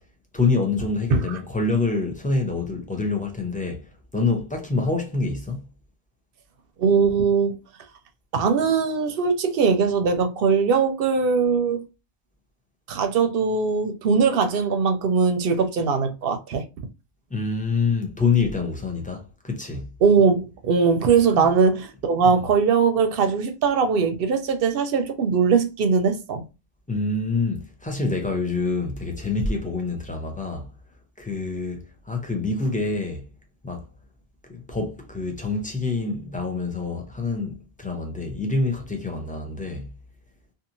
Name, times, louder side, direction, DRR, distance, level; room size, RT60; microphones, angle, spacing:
voice 1, 0.3-3.8 4.1-5.7 17.3-19.9 21.4-21.5 22.2-22.4 26.9-30.7 31.2-33.3 33.6-33.8 34.5-39.9, left 3 dB, 10° left, 0.5 m, -26 dB
voice 2, 6.8-7.6 8.3-11.9 12.9-16.6 20.0-26.4, right 5 dB, 65° right, 0.7 m, -21 dB
2.8 x 2.4 x 2.5 m
omnidirectional pair, 1.1 m